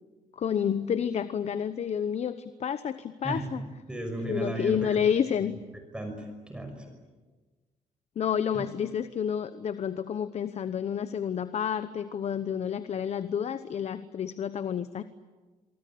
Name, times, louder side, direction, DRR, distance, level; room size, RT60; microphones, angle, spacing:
voice 1, 0.3-3.6 4.2-5.6 8.2-15.0, left 8 dB, 50° left, 12 dB, 1.0 m, -29 dB
voice 2, 3.2-5.0 5.9-6.9 8.5-8.6, right 1 dB, 5° right, 4 dB, 5.7 m, -35 dB
28.5 x 24.0 x 8.6 m, 1.3 s
cardioid pair, 125°, 14 cm